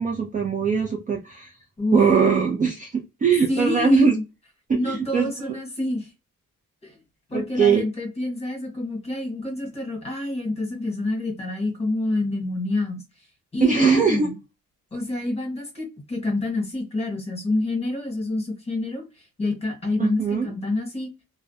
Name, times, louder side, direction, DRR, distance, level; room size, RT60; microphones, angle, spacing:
voice 1, 0.0-1.5 1.9-4.1 4.7-5.6 7.3-7.8 13.6-14.3 20.0-20.5, right 5 dB, 25° right, 1 dB, 0.4 m, -21 dB
voice 2, 3.5-4.2 4.7-6.1 6.8-7.0 7.3-13.0 13.5-14.4 14.9-19.0 19.4-21.1, left 2 dB, 20° left, 2 dB, 1.1 m, -27 dB
2.3 x 2.1 x 2.6 m, 0.27 s
cardioid pair, 125°, 33 cm